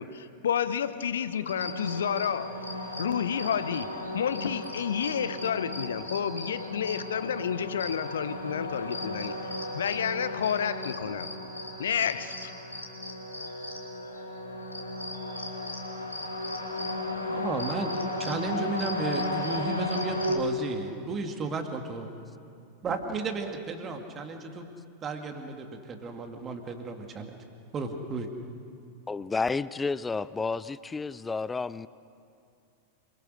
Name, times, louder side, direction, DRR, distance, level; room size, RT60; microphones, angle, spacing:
voice 1, 0.0-2.5 3.0-3.9 4.1-11.3 11.8-12.5, left 8 dB, 65° left, 13 dB, 0.9 m, -30 dB
sound 1, 1.5-20.4, left 1 dB, 85° left, 2.7 m, -35 dB
voice 2, 17.3-17.9 18.2-22.1 22.8-24.7 25.0-27.3 27.7-28.3, right 3 dB, 25° right, 5 dB, 2.2 m, -34 dB
voice 3, 29.1-31.9, left 4 dB, 15° left, 18 dB, 0.5 m, -31 dB
28.0 x 22.5 x 6.5 m, 2.5 s
figure-of-eight pair, 90°, 0 cm